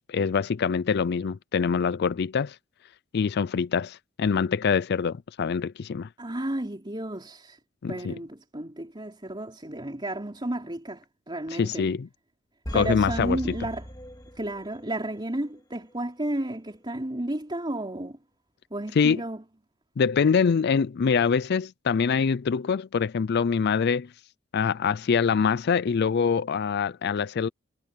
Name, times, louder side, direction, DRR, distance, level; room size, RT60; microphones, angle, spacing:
voice 1, 0.0-2.6 3.1-6.1 7.8-8.2 11.5-12.1 12.7-13.4 19.0-19.2 20.0-24.1 24.5-27.5, left 6 dB, 50° left, 0.4 m, -24 dB
voice 2, 6.2-7.6 7.9-11.9 12.7-13.9 14.3-18.2 18.7-19.4, right 1 dB, 25° right, 3.4 m, -32 dB
sound 1, 12.6-14.8 15.2-15.3, equal, 20° left, 2.3 m, -37 dB
head